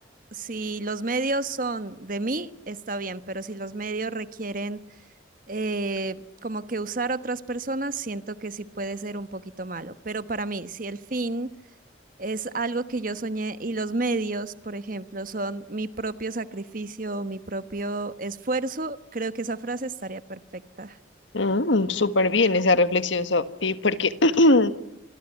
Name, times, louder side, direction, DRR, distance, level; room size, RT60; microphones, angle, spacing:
voice 1, 0.3-4.8 5.5-11.5 12.2-21.0, right 2 dB, 45° right, 13 dB, 1.2 m, -31 dB
voice 2, 21.3-24.7, left 2 dB, 75° left, 12 dB, 1.6 m, -21 dB
27.5 x 23.5 x 9.2 m, 0.86 s
head